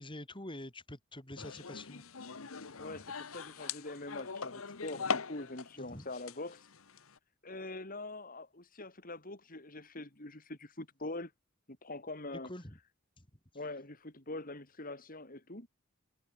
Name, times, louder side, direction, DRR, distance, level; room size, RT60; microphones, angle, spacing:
voice 1, 0.0-2.3 5.8-6.1 12.3-12.8 13.2-13.3, left 1 dB, 25° left, 5.3 m, -46 dB
sound 1, 1.4-5.8 6.0-7.2, left 5 dB, 85° left, 1.2 m, -41 dB
voice 2, 2.8-6.7 7.4-11.3 11.8-12.5 13.5-15.7, left 2 dB, 45° left, 4.4 m, -44 dB
head